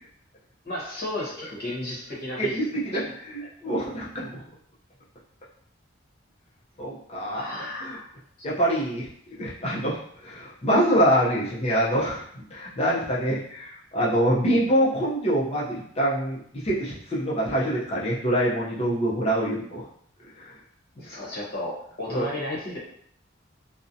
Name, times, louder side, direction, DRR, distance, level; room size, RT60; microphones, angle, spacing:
voice 1, 0.6-2.6 3.0-3.1 3.4-3.5 7.3-8.1 21.0-22.8, left 1 dB, 50° left, -5 dB, 0.9 m, -33 dB
voice 2, 2.4-4.4 6.8-7.4 7.8-8.0 8.4-9.1 9.4-19.8 20.4-20.5 22.1-22.2, equal, 30° left, -6 dB, 0.5 m, -25 dB
2.5 x 2.0 x 2.5 m, 0.65 s
head